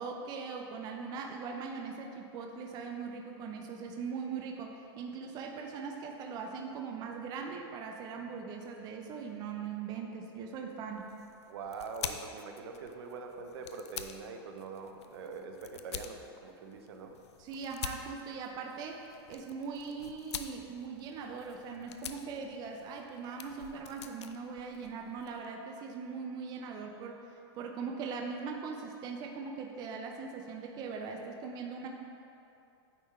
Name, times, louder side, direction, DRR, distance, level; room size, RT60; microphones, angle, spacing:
voice 1, 0.0-11.1 17.4-19.0 19.3-27.2 27.5-31.9, right 5 dB, 30° right, 2 dB, 0.5 m, -40 dB
sound 1, 10.9-25.5, left 8 dB, 85° left, 0.5 m, -47 dB
voice 2, 11.5-17.2, right 4 dB, 70° right, 4 dB, 0.8 m, -43 dB
9.2 x 3.6 x 4.3 m, 2.7 s
hypercardioid pair, 140°, 14 cm